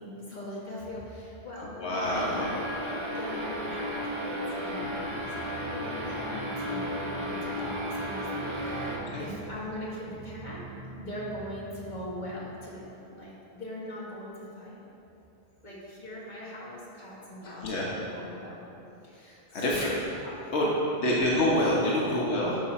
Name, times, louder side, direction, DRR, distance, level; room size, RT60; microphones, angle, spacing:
voice 1, 0.0-10.6 11.0-14.8 15.6-18.6 19.0-19.9 20.2-20.3 21.0-21.2, left 1 dB, 45° left, -6 dB, 1.9 m, -41 dB
voice 2, 1.8-2.5 8.9-9.2 17.4-17.9 19.5-19.9 20.5-20.7 21.0-22.6, left 1 dB, 80° left, -5 dB, 1.2 m, -27 dB
sound 1, 2.0-9.0, equal, 25° right, 1.1 m, -34 dB
sound 2, 4.8-12.6, right 3 dB, 50° right, 0.7 m, -45 dB
10.5 x 4.8 x 4.2 m, 2.9 s
omnidirectional pair, 1.1 m